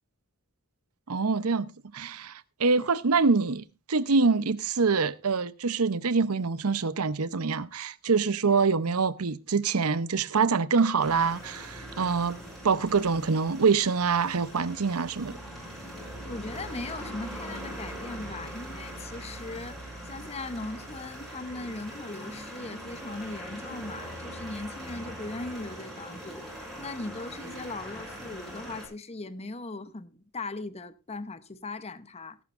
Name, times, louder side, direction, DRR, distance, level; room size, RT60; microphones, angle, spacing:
voice 1, 1.1-12.4 12.6-15.4, right 4 dB, 90° right, 0.8 m, -25 dB
sound 1, 11.0-28.9, equal, ahead, 6.3 m, -41 dB
voice 2, 16.2-19.8 20.0-32.4, left 2 dB, 30° left, 0.8 m, -39 dB
17.5 x 11.5 x 2.5 m
head